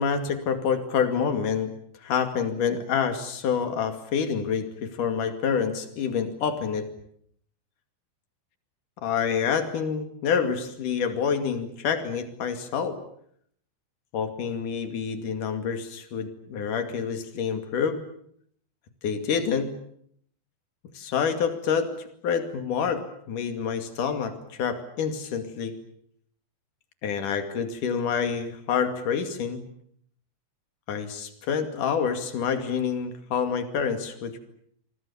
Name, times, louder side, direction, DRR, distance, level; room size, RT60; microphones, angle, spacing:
voice 1, 0.0-1.7 2.0-6.9 9.0-13.0 14.1-18.1 19.0-19.8 20.9-22.0 22.2-25.8 27.0-29.6 30.9-34.4, left 6 dB, 50° left, 8 dB, 3.5 m, -27 dB
28.0 x 23.5 x 7.2 m, 0.67 s
omnidirectional pair, 5.2 m